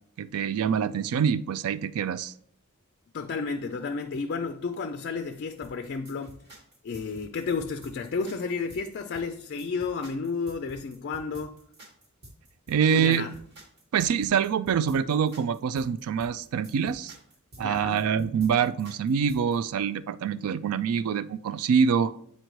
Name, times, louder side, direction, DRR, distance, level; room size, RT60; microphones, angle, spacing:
voice 1, 0.2-2.3 12.7-13.3 13.9-17.1 17.6-22.1, right 7 dB, 75° right, 16 dB, 0.3 m, -25 dB
voice 2, 3.1-6.4 6.8-11.6 12.9-13.3 17.6-18.0, left 4 dB, 50° left, 7 dB, 0.4 m, -32 dB
sound 1, 5.6-19.6, equal, 50° right, 1.3 m, -50 dB
7.9 x 4.3 x 3.1 m, 0.67 s
head